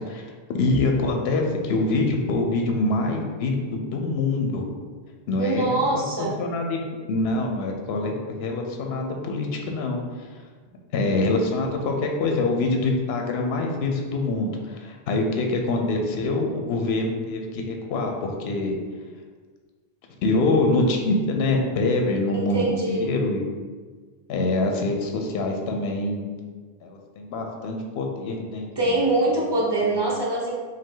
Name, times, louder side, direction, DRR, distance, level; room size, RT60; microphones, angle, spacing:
voice 1, 0.1-4.7 5.3-6.8 7.1-10.4 10.9-18.8 20.2-23.4 24.3-26.3 26.8-29.3 29.8-29.9, left 2 dB, 80° left, 2 dB, 0.8 m, -25 dB
voice 2, 5.4-6.4 22.3-23.1 28.8-30.6, right 2 dB, 30° right, -3 dB, 0.6 m, -24 dB
5.1 x 2.2 x 3.7 m, 1.5 s
omnidirectional pair, 1.1 m